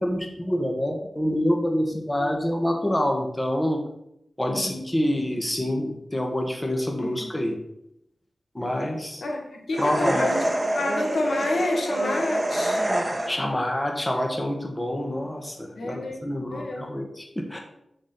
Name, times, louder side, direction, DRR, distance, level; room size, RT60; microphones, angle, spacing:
voice 1, 0.0-3.8 4.4-7.5 8.5-9.2 9.8-10.2 13.3-17.6, left 1 dB, 15° left, 2 dB, 1.5 m, -26 dB
voice 2, 9.7-12.8 15.8-16.8, left 2 dB, 80° left, 0 dB, 1.8 m, -29 dB
sound 1, 9.7-13.6, right 1 dB, 25° right, 1.1 m, -26 dB
7.3 x 4.4 x 6.7 m, 0.80 s
cardioid pair, 60°, 0 cm